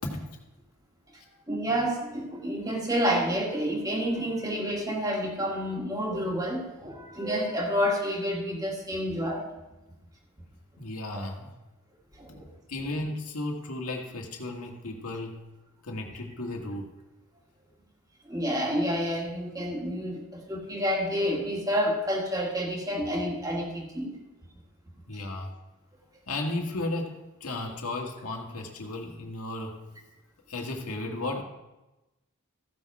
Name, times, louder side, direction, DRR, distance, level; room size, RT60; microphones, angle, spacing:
voice 1, 1.5-9.4 11.1-11.3 12.2-12.4 18.3-24.1, equal, 15° right, 0 dB, 1.6 m, -29 dB
voice 2, 10.8-11.5 12.7-15.4 15.8-16.9 25.1-25.6 26.3-29.8 30.5-31.4, left 2 dB, 85° left, 1 dB, 1.7 m, -34 dB
15.0 x 6.0 x 4.8 m, 1.0 s
head